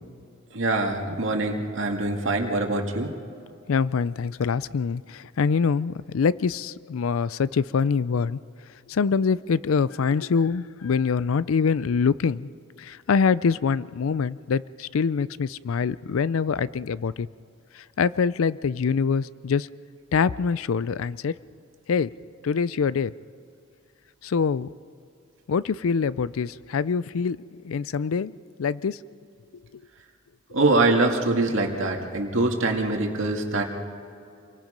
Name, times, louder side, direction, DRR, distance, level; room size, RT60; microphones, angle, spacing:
voice 1, 0.6-3.1 30.5-33.6, right 2 dB, 65° right, 2 dB, 2.3 m, -24 dB
voice 2, 3.7-8.4 8.9-12.5 12.8-17.3 17.7-19.7 20.1-21.3 21.9-22.1 22.4-23.1 24.2-24.7 25.5-27.4 27.6-29.0, left 5 dB, 85° left, 18 dB, 0.4 m, -24 dB
27.5 x 23.0 x 5.2 m, 2.5 s
head